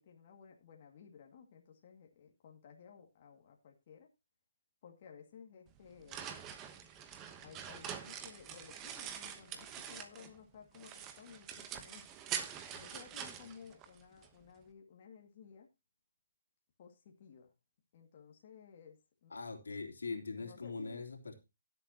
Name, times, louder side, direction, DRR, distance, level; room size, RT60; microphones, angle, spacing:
voice 1, 0.0-4.1 4.8-6.4 7.4-12.0 12.7-15.7 16.8-17.5 17.9-19.3 20.4-21.0, left 7 dB, 40° left, 1 dB, 2.2 m, -56 dB
sound 1, 5.7-10.4 10.7-14.3, right 9 dB, 15° right, 1.0 m, -45 dB
voice 2, 19.3-21.3, left 4 dB, 85° left, 3 dB, 3.2 m, -42 dB
17.0 x 8.0 x 2.9 m, 0.26 s
hypercardioid pair, 160°, 0 cm